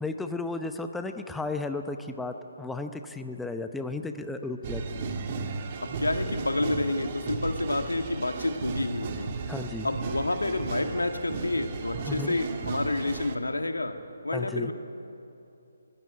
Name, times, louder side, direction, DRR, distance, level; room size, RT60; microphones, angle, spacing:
voice 1, 0.0-5.1 9.5-9.9 12.1-12.4 14.3-14.7, left 3 dB, 5° left, 7 dB, 0.8 m, -34 dB
sound 1, 4.6-13.4, right 4 dB, 35° right, 1.8 m, -35 dB
voice 2, 5.8-9.3 9.8-14.0 14.2-14.7, left 2 dB, 85° left, 6 dB, 1.8 m, -29 dB
22.0 x 15.5 x 9.4 m, 2.7 s
figure-of-eight pair, 145°, 0 cm